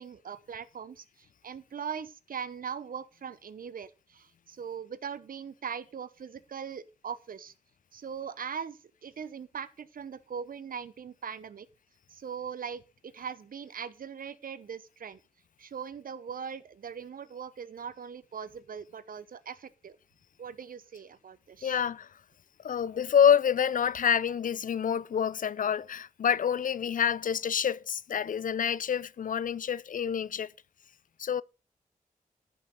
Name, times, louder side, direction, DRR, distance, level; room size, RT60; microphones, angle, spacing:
voice 1, 0.0-7.5 7.9-11.7 12.1-15.2 15.6-20.0 20.4-21.8, right 7 dB, 70° right, 0.8 m, -40 dB
voice 2, 21.6-22.1 22.6-30.5 31.2-31.4, left 8 dB, 65° left, 0.4 m, -27 dB
10.5 x 5.6 x 6.3 m
cardioid pair, 50°, 15 cm